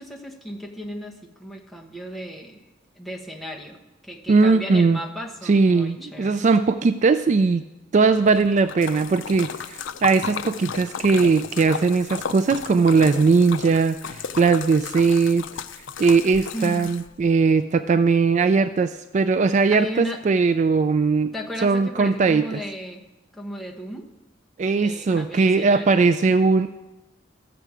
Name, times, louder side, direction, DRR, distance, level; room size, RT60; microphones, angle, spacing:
voice 1, 0.0-2.7 3.0-6.5 16.5-16.9 19.7-20.2 21.3-23.0 23.3-24.1 24.7-26.4, equal, ahead, -1 dB, 1.1 m, -35 dB
voice 2, 4.3-5.0 5.5-7.6 7.9-15.5 16.0-21.3 21.6-22.6 24.6-26.7, right 4 dB, 40° right, 11 dB, 0.3 m, -19 dB
Splash splatter, 8.2-17.3, left 7 dB, 75° left, 0.5 m, -34 dB
14.0 x 7.8 x 4.8 m, 1.0 s
head